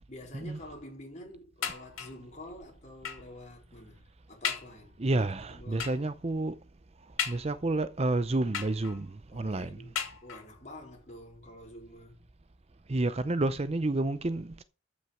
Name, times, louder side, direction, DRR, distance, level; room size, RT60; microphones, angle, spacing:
voice 1, 0.1-5.0 5.5-6.1 9.3-12.2, left 1 dB, 35° left, 4.2 m, -48 dB
sound 1, 1.6-2.3 3.0-3.4 3.9-4.0 4.4-4.8 5.8-6.1 7.2-7.8 8.5-9.1 9.9-10.6 11.4-11.5 11.9-12.0, left 8 dB, 85° left, 2.8 m, -36 dB
voice 2, 5.0-6.6 7.3-9.9 12.9-14.6, right 2 dB, 30° right, 0.6 m, -30 dB
14.0 x 6.1 x 5.8 m
head